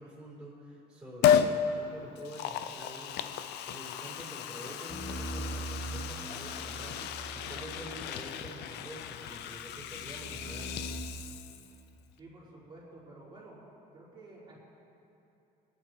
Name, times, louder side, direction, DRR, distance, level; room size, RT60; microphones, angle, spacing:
voice 1, 0.0-10.7, right 1 dB, 5° right, -7 dB, 4.0 m, -47 dB
Liquid, 1.2-1.6 2.2-11.8 12.1-12.2, left 9 dB, 85° left, 0.7 m, -33 dB
sound 1, 4.9-7.9 9.3-11.0, right 2 dB, 45° left, 2.3 m, -41 dB
voice 2, 12.2-13.6 13.9-14.6, right 2 dB, 30° right, -8 dB, 3.9 m, -51 dB
21.0 x 10.5 x 4.7 m, 2.9 s
cardioid pair, 110°, 17 cm